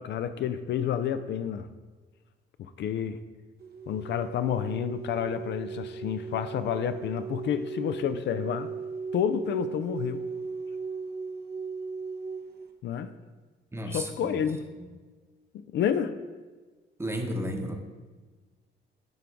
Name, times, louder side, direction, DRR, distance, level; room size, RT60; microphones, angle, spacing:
voice 1, 0.0-1.7 2.6-3.2 3.9-8.7 9.1-10.2 12.8-13.1 13.9-14.6 15.5-16.1, left 9 dB, 65° left, 11 dB, 0.4 m, -29 dB
sound 1, 3.6-12.7, right 5 dB, 50° right, 0.8 m, -37 dB
voice 2, 13.7-14.4 17.0-17.7, equal, 10° right, 3 dB, 0.9 m, -33 dB
10.5 x 3.8 x 3.5 m, 1.3 s
cardioid pair, 90°, 20 cm